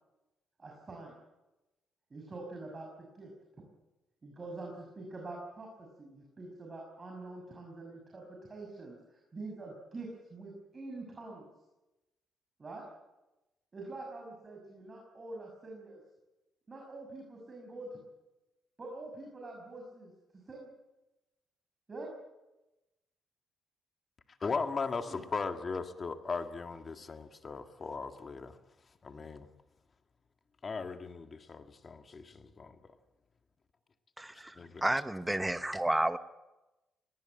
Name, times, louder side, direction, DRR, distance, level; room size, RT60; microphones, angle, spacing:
voice 1, 0.6-1.1 2.1-3.3 3.6-3.7 4.2-11.5 12.6-12.9 13.7-16.0 16.7-18.0 18.8-20.7 21.9-22.1 25.1-25.3, right 2 dB, 30° right, 6.2 m, -45 dB
voice 2, 24.4-28.6 29.0-29.5 30.6-32.9 34.6-34.8, left 4 dB, 35° left, 1.9 m, -38 dB
voice 3, 34.2-34.5 34.8-36.2, right 1 dB, 10° right, 1.1 m, -31 dB
20.0 x 20.0 x 9.0 m
cardioid pair, 90°, 0 cm